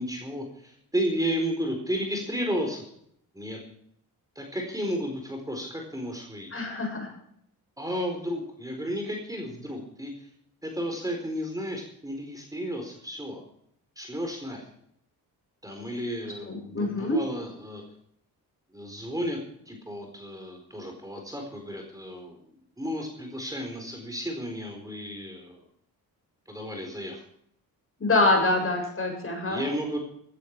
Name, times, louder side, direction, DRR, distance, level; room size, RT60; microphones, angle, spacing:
voice 1, 0.0-2.8 3.3-3.6 4.3-6.5 7.8-10.3 10.6-13.4 14.0-14.7 15.6-17.8 18.7-19.4 19.7-25.6 26.5-27.2 29.5-30.0, equal, 10° right, 2 dB, 4.3 m, -33 dB
voice 2, 6.5-7.1 16.4-17.2 28.0-29.6, left 2 dB, 35° left, 1 dB, 7.3 m, -25 dB
15.5 x 14.0 x 4.8 m, 0.70 s
cardioid pair, 90°, 37 cm